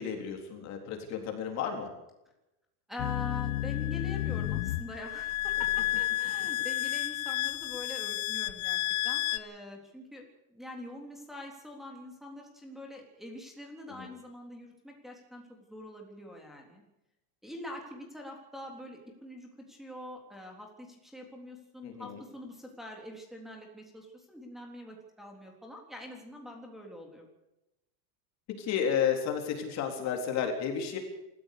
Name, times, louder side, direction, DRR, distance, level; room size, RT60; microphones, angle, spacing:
voice 1, 0.0-1.9 14.0-14.1 21.8-22.2 28.6-31.0, left 7 dB, 35° left, 4 dB, 3.9 m, -32 dB
voice 2, 2.9-10.2 10.5-16.8 17.4-27.3, left 1 dB, ahead, -1 dB, 3.7 m, -45 dB
sound 1, 3.0-9.4, left 15 dB, 60° left, 1.3 m, -31 dB
26.0 x 14.5 x 6.8 m, 0.92 s
supercardioid pair, 160°, 45 cm